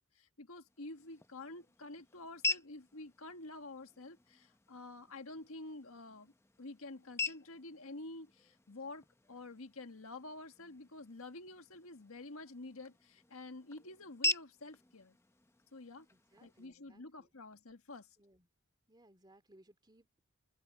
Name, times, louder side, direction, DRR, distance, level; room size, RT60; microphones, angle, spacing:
voice 1, 0.2-6.3 6.6-15.1 15.7-16.1 16.4-18.1, left 2 dB, 70° left, 1.6 m, -49 dB
sound 1, 0.7-16.7, left 2 dB, 10° left, 0.7 m, -44 dB
voice 2, 16.1-17.3 18.2-18.5 18.9-20.2, right 1 dB, 20° right, 2.5 m, -64 dB
open air
head